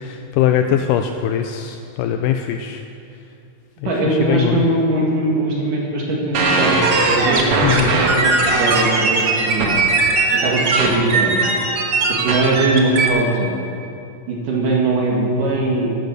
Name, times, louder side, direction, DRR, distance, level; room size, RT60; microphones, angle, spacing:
voice 1, 0.0-2.8 3.8-4.7 7.6-8.0, left 10 dB, 80° left, 6 dB, 2.0 m, -21 dB
voice 2, 3.8-6.8 7.1-9.8 10.3-11.4 12.1-13.6 14.3-16.0, right 2 dB, 70° right, -2 dB, 3.4 m, -20 dB
sound 1, 6.3-13.1, right 3 dB, 55° right, 1.8 m, -18 dB
13.0 x 10.5 x 6.8 m, 2.6 s
omnidirectional pair, 4.0 m